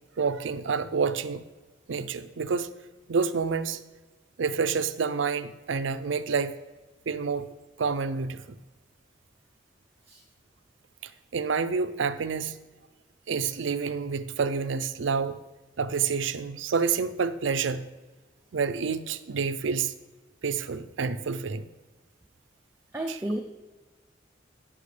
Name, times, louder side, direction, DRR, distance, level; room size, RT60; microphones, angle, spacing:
voice 1, 0.2-1.4 1.9-2.7 3.1-3.8 4.4-6.5 7.1-7.5 7.8-8.6 11.0-12.6 13.3-15.4 15.8-17.9 18.5-19.9 20.4-21.7 23.1-23.2, right 5 dB, 85° right, 13 dB, 0.5 m, -28 dB
voice 2, 22.9-23.4, right 1 dB, 15° right, 1 dB, 0.5 m, -31 dB
16.0 x 6.0 x 3.3 m, 1.2 s
head